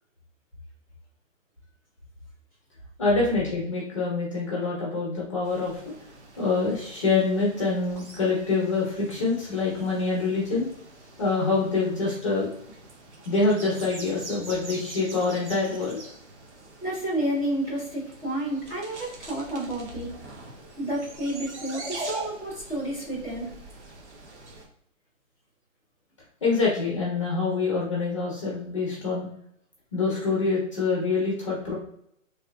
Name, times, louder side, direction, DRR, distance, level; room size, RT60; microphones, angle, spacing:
voice 1, 3.0-5.9 6.4-10.7 11.2-12.5 13.2-16.0 26.4-29.3 29.9-31.7, left 3 dB, 25° left, -4 dB, 0.7 m, -25 dB
sound 1, 5.4-24.6, right 2 dB, 55° right, 1.0 m, -44 dB
voice 2, 16.8-20.3 20.8-23.5, right 1 dB, 15° right, -9 dB, 0.9 m, -30 dB
3.2 x 2.9 x 2.3 m, 0.74 s
hypercardioid pair, 160°, 40 cm